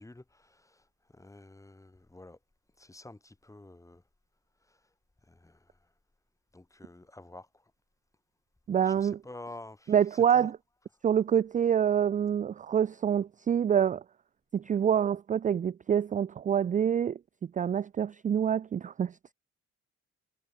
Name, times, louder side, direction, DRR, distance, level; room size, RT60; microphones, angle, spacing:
voice 1, 0.0-2.4 2.8-4.0 4.7-4.8 5.3-5.8 6.5-7.5 8.8-10.5, left 2 dB, 10° left, 1.3 m, -49 dB
voice 2, 8.7-9.2 9.9-10.6 11.0-14.0 14.5-19.3, right 8 dB, 25° right, 0.3 m, -26 dB
cardioid pair, 90°, 30 cm